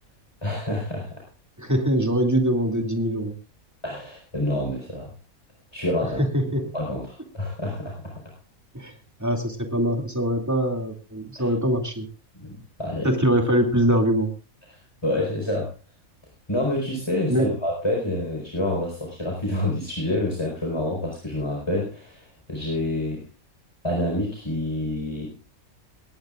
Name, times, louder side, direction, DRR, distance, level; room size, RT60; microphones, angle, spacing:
voice 1, 0.4-1.2 3.8-5.1 5.7-6.2 6.7-8.3 11.3-11.5 12.3-13.2 15.0-15.7 16.5-23.3 23.8-25.3, left 1 dB, 20° left, -1 dB, 4.6 m, -28 dB
voice 2, 1.6-3.3 6.2-6.7 8.7-8.9 9.2-12.1 13.0-14.3 17.3-17.5, equal, 10° right, 3 dB, 2.5 m, -23 dB
19.5 x 18.0 x 2.5 m, 0.33 s
omnidirectional pair, 1.5 m